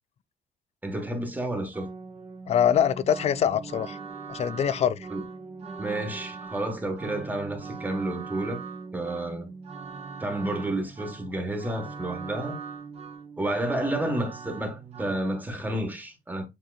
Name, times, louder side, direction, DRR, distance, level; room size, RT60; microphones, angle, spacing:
voice 1, 0.8-1.9 5.1-5.2 5.8-8.6 8.9-9.5 10.2-12.6 13.4-16.5, right 1 dB, 10° right, 1.3 m, -30 dB
sound 1, 1.7-15.2, right 5 dB, 35° right, 1.2 m, -40 dB
voice 2, 2.5-4.0 4.3-5.0, left 9 dB, 40° left, 0.4 m, -23 dB
7.2 x 2.9 x 2.3 m
cardioid pair, 110°, 17 cm